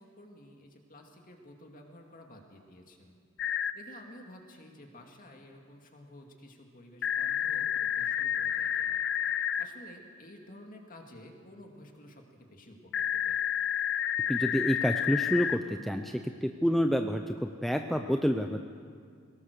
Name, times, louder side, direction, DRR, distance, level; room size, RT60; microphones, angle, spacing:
voice 1, 0.0-3.1 3.7-9.0 9.6-13.4, left 1 dB, 35° left, 2 dB, 2.4 m, -52 dB
sound 1, 3.4-3.7 7.0-9.7 12.9-15.6, left 10 dB, 55° left, 0.7 m, -30 dB
voice 2, 14.3-18.6, equal, ahead, 5 dB, 0.5 m, -28 dB
23.0 x 18.5 x 6.7 m, 2.1 s
head